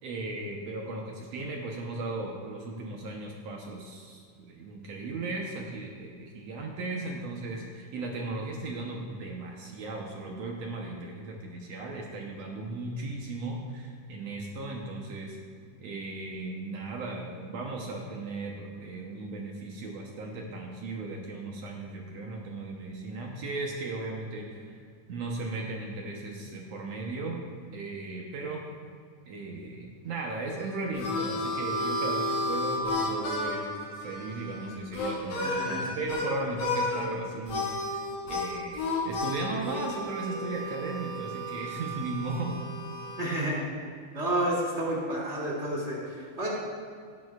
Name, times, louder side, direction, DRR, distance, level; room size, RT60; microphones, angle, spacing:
voice 1, 0.0-15.4 15.8-24.8 25.1-27.4 27.7-28.6 29.3-33.7 34.0-38.0 38.3-42.6, right 2 dB, 65° right, 0 dB, 1.9 m, -36 dB
Harmonica, 30.5-36.3 36.6-37.1 37.5-43.5, left 1 dB, 75° left, 3.4 m, -32 dB
voice 2, 35.4-35.8 43.2-43.6 44.1-46.5, right 1 dB, 20° right, -5 dB, 2.7 m, -30 dB
17.0 x 11.0 x 2.4 m, 2.1 s
omnidirectional pair, 3.7 m